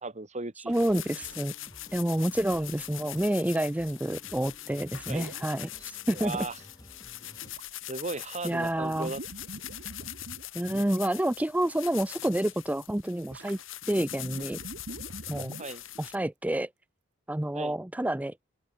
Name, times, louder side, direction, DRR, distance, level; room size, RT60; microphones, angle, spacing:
voice 1, 0.0-0.7 5.1-5.3 6.1-6.5 7.9-9.2 9.6-9.7 15.6-15.8 17.5-17.7, right 3 dB, 35° right, 1.8 m, -36 dB
sound 1, 0.7-16.1, left 14 dB, 65° left, 2.4 m, -42 dB
voice 2, 0.7-1.5 1.9-6.5 8.4-9.1 10.5-13.6 13.9-14.6 15.3-15.5 16.0-16.7 17.3-18.4, right 1 dB, 5° right, 0.5 m, -29 dB
sound 2, 0.7-1.4 1.9-2.0 5.1-5.5 7.5-8.1 8.4-11.1 11.5-11.9 13.3-16.1, right 2 dB, 55° right, 1.6 m, -45 dB
sound 3, 1.1-7.5, left 1 dB, 20° left, 3.0 m, -54 dB
open air
head